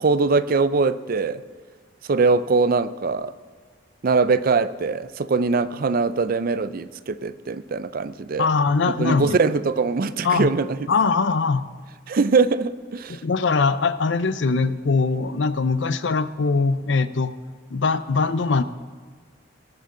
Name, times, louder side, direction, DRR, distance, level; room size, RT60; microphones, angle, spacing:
voice 1, 0.0-1.4 2.1-3.3 4.0-8.5 9.0-10.7 12.1-13.2, right 4 dB, 50° right, 15 dB, 0.4 m, -22 dB
voice 2, 8.4-9.4 10.2-10.5 10.9-11.6 13.1-17.3 17.7-18.6, left 4 dB, 65° left, 13 dB, 0.5 m, -21 dB
20.0 x 8.9 x 3.8 m, 1.6 s
head